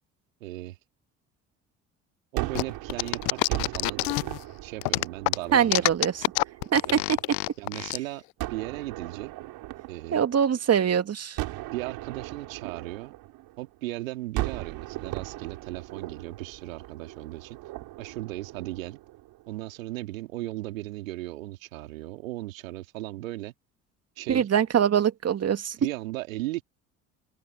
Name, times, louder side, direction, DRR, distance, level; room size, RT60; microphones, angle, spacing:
voice 1, 0.4-0.8 2.3-4.1 4.6-5.9 6.9-7.0 7.6-8.2 8.5-9.3 9.9-10.2 11.7-13.1 13.6-17.6 18.0-19.0 19.5-23.5 24.2-24.5 25.8-26.6, right 18 dB, 80° right, 2.8 m, -36 dB
Gunshot gunfire, 2.4-7.5 8.4-10.8 11.4-13.8 14.3-19.6, right 18 dB, 65° right, 4.5 m, -38 dB
sound 1, 2.6-4.4 4.8-8.0, left 31 dB, 65° left, 0.6 m, -26 dB
voice 2, 5.5-6.2 6.7-7.0 10.1-11.4 24.3-25.8, right 8 dB, 40° right, 2.0 m, -23 dB
hypercardioid pair, 55°, 39 cm